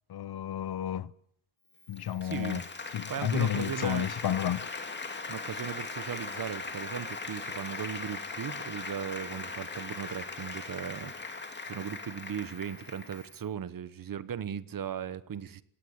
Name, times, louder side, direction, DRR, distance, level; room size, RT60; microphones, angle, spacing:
voice 1, 0.1-1.1 1.9-2.6 2.9-4.7, left 10 dB, 55° left, 0.9 m, -31 dB
Applause, 1.8-13.4, left 3 dB, 25° left, 2.7 m, -39 dB
voice 2, 2.2-2.6 3.1-4.1 5.3-15.6, right 8 dB, 50° right, 1.1 m, -37 dB
27.0 x 17.5 x 8.2 m
wide cardioid pair, 175°, 45 cm